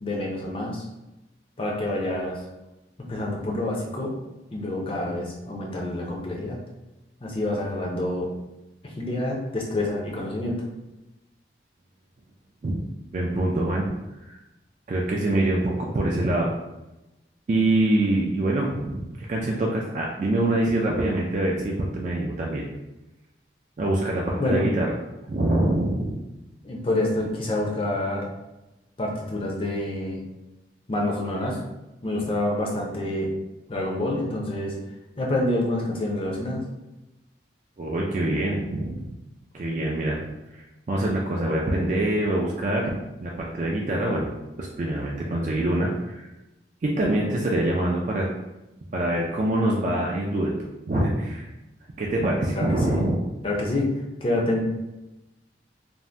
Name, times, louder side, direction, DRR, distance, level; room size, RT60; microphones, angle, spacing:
voice 1, 0.0-0.8 1.6-2.4 3.1-4.1 4.5-6.6 7.2-8.3 9.0-10.6 24.4-24.7 26.6-28.3 29.0-30.2 30.9-31.6 32.0-33.3 33.7-34.8 35.2-36.6 52.5-53.0 53.4-53.9 54.2-54.6, left 1 dB, 30° left, -2 dB, 0.5 m, -27 dB
voice 2, 13.1-13.9 14.9-16.5 17.5-22.6 23.8-25.0 25.3-26.2 37.8-39.0 39.5-40.2 40.5-42.9 43.2-44.3 44.6-46.3 46.8-48.3 48.9-50.5 50.9-51.5 52.0-53.2, right 1 dB, 40° right, -3 dB, 0.3 m, -25 dB
2.5 x 2.1 x 3.2 m, 0.99 s
head